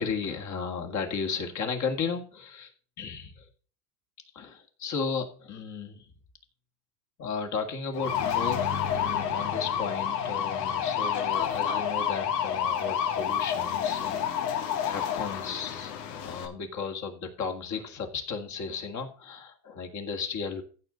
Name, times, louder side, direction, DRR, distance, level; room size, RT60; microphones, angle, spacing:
voice 1, 0.0-2.7 3.0-3.5 4.3-6.1 7.2-20.6, left 5 dB, 35° left, 4 dB, 2.2 m, -35 dB
sound 1, 8.0-16.5, left 8 dB, 85° left, 2.7 m, -29 dB
15.0 x 6.4 x 4.0 m, 0.39 s
supercardioid pair, 120°, 48 cm